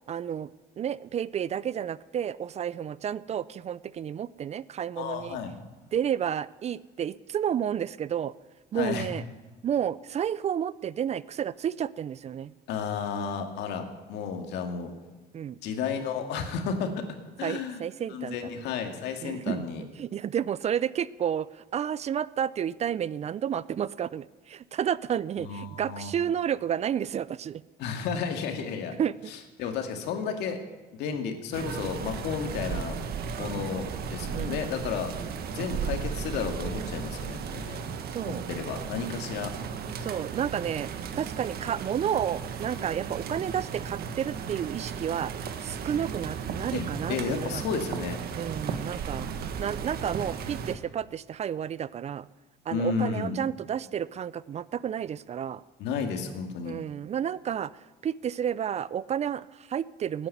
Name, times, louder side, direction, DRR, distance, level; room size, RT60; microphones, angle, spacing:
voice 1, 0.1-0.5 0.8-5.4 5.9-8.3 8.7-9.2 9.6-12.5 15.3-15.6 17.4-18.6 19.2-19.6 20.0-27.6 29.0-29.3 31.1-31.2 32.3-32.5 34.3-34.6 35.6-35.9 38.1-38.5 40.0-40.9 41.2-45.3 45.6-47.6 48.3-49.3 49.6-52.3 52.7-55.6 56.7-57.7 58.0-60.3, right 9 dB, 40° right, 19 dB, 0.5 m, -31 dB
voice 2, 5.0-5.5 8.7-9.1 12.7-14.9 15.6-17.8 18.1-19.8 25.4-26.1 27.8-28.9 29.3-30.6 30.9-33.0 33.4-35.1 35.5-37.8 38.3-39.5 46.7-46.8 47.1-48.2 52.7-53.4 55.8-56.8, left 6 dB, 85° left, 5 dB, 2.2 m, -32 dB
sound 1, 31.5-50.8, right 6 dB, 65° right, 1.5 m, -35 dB
16.0 x 9.6 x 9.2 m, 1.3 s
cardioid pair, 110°, 17 cm